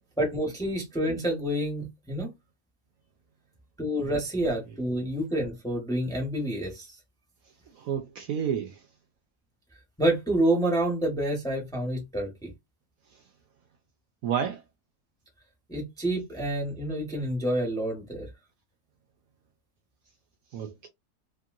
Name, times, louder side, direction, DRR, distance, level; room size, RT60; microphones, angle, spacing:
voice 1, 0.2-2.3 3.8-7.0 10.0-12.5 15.7-18.3, right 1 dB, 5° left, 0.8 m, -28 dB
voice 2, 7.8-8.8 14.2-14.6 20.5-20.9, right 8 dB, 70° right, 0.9 m, -30 dB
3.0 x 2.7 x 2.4 m
omnidirectional pair, 1.8 m